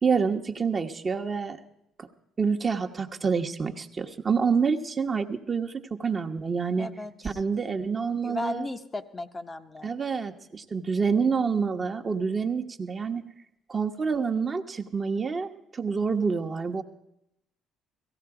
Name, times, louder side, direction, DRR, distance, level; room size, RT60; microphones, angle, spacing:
voice 1, 0.0-1.6 2.0-2.1 2.4-6.9 7.2-8.7 9.8-13.2 13.7-16.8, right 5 dB, 35° right, 4 dB, 1.2 m, -27 dB
voice 2, 6.8-7.4 8.2-9.9, left 2 dB, 25° left, 7 dB, 0.9 m, -35 dB
17.0 x 15.0 x 4.9 m, 0.83 s
hypercardioid pair, 60°, 0 cm